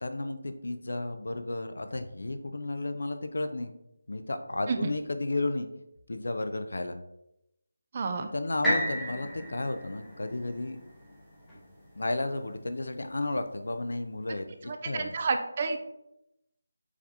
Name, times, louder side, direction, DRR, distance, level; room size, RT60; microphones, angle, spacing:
voice 1, 0.0-3.8 4.1-5.7 6.1-7.0 8.2-10.8 12.0-15.1, left 2 dB, 75° left, 8 dB, 0.4 m, -33 dB
voice 2, 7.9-8.3 14.7-15.8, right 4 dB, 35° right, 7 dB, 0.4 m, -30 dB
sound 1, 8.6-12.6 13.2-13.3, equal, 5° left, 0.9 m, -34 dB
4.8 x 3.4 x 2.6 m, 0.85 s
figure-of-eight pair, 170°, 0 cm